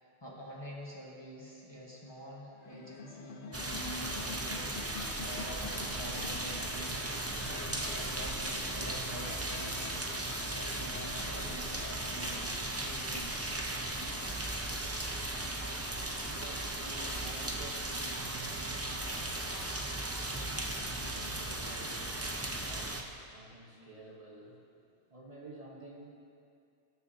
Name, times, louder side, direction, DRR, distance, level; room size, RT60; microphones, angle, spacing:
voice 1, 0.0-4.8 5.2-7.0 7.4-9.8 10.4-11.7 12.0-13.3, equal, 25° left, -4 dB, 1.3 m, -47 dB
sound 1, 2.5-12.4, left 5 dB, 55° left, 0.8 m, -47 dB
sound 2, 3.5-23.0, right 2 dB, 20° right, 0.5 m, -37 dB
voice 2, 15.6-26.1, right 2 dB, 35° right, -4 dB, 1.2 m, -52 dB
18.0 x 6.6 x 2.8 m, 2.4 s
omnidirectional pair, 1.1 m